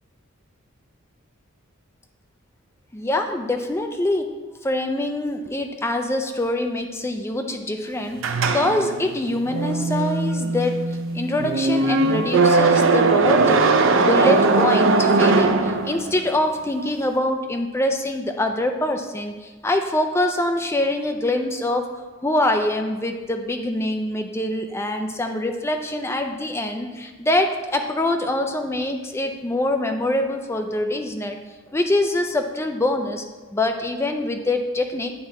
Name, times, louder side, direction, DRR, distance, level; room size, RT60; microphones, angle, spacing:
voice 1, 2.9-4.3 4.6-8.2 8.5-10.8 11.1-13.6 14.0-21.8 22.2-31.4 31.7-33.2 33.5-35.1, left 1 dB, 10° left, 4 dB, 0.4 m, -24 dB
sound 1, 8.2-16.3, right 3 dB, 65° right, 0.5 m, -19 dB
9.3 x 3.2 x 3.6 m, 1.3 s
head